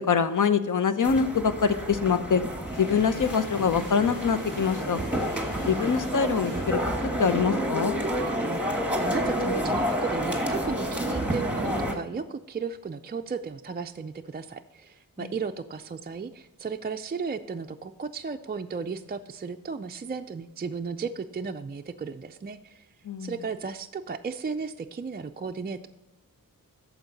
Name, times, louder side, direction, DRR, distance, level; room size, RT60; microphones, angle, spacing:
voice 1, 0.0-2.4 2.8-5.0 5.6-8.0 15.2-15.3 23.0-23.4, left 6 dB, 60° left, 10 dB, 0.8 m, -24 dB
sound 1, 1.0-11.9, equal, 5° right, 1.4 m, -29 dB
sound 2, 2.5-8.1, left 1 dB, 30° left, 3.3 m, -47 dB
voice 2, 8.2-22.9 23.2-25.9, right 5 dB, 30° right, 6 dB, 0.4 m, -35 dB
13.5 x 4.6 x 4.0 m, 1.0 s
wide cardioid pair, 85°, 36 cm